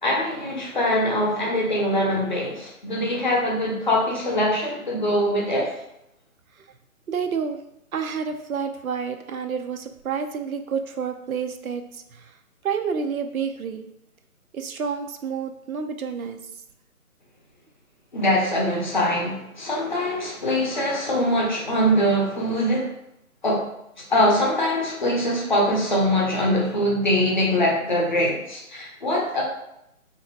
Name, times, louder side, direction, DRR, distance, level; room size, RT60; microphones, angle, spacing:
voice 1, 0.0-5.7 18.1-22.9 23.4-23.7 24.1-29.4, equal, 35° left, -3 dB, 0.7 m, -23 dB
voice 2, 7.1-7.6 7.9-11.8 12.1-12.2 12.6-13.9 14.5-16.4, right 6 dB, 75° right, 7 dB, 0.5 m, -29 dB
3.4 x 2.6 x 2.6 m, 0.80 s
figure-of-eight pair, 150°, 43 cm